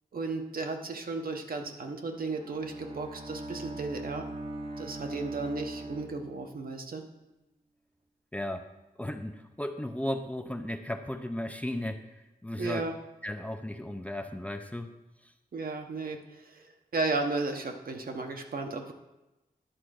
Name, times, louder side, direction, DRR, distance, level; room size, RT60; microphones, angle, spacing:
voice 1, 0.1-4.3 4.8-7.0 12.6-12.9 15.5-18.9, right 3 dB, 70° right, 4 dB, 1.0 m, -34 dB
Bowed string instrument, 2.1-6.8, right 2 dB, 35° right, 0.8 m, -41 dB
voice 2, 8.3-8.7 9.0-12.1 12.4-12.8 13.2-14.9, left 1 dB, 10° left, 6 dB, 0.5 m, -35 dB
10.5 x 4.3 x 6.4 m, 1.0 s
wide cardioid pair, 105°, 16 cm